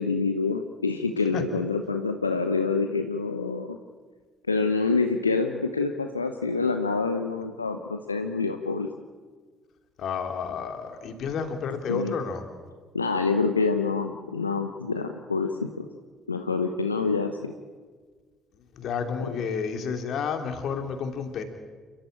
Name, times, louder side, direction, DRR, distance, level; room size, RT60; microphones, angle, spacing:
voice 1, 0.0-3.8 4.5-8.9 11.9-12.1 12.9-15.8 16.3-17.5, left 4 dB, 90° left, 6 dB, 0.8 m, -26 dB
voice 2, 10.0-12.4 18.8-21.4, left 6 dB, 55° left, 6 dB, 2.8 m, -30 dB
29.0 x 13.5 x 8.8 m, 1.5 s
figure-of-eight pair, 50°, 0 cm